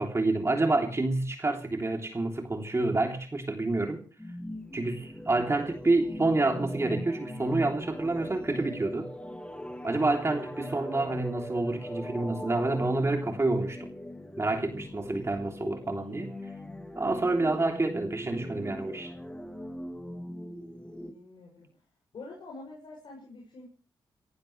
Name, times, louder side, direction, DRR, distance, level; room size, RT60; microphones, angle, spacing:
voice 1, 0.0-4.0 4.7-9.1 9.8-13.9 14.4-16.3 17.0-19.1, right 2 dB, 30° right, 3 dB, 3.3 m, -28 dB
sound 1, 4.2-21.1, left 1 dB, 10° left, 2.5 m, -41 dB
voice 2, 21.1-21.7 22.1-23.7, left 3 dB, 65° left, -2 dB, 6.8 m, -46 dB
27.5 x 15.0 x 3.3 m, 0.37 s
supercardioid pair, 45°, 9 cm